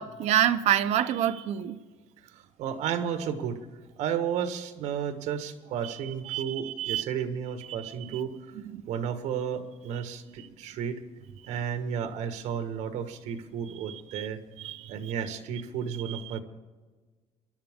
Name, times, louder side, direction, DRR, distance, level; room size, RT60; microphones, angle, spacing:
voice 1, 0.0-1.8 5.8-6.0 6.2-7.0 7.8-8.2 8.7-8.8 13.9-14.3 14.6-15.1 16.1-16.4, right 11 dB, 65° right, 0.8 m, -28 dB
voice 2, 2.6-3.6 4.0-8.3 8.9-11.0 11.5-14.4 14.9-16.4, right 8 dB, 80° right, 1.6 m, -32 dB
24.0 x 12.0 x 3.7 m
cardioid pair, 170°, 12 cm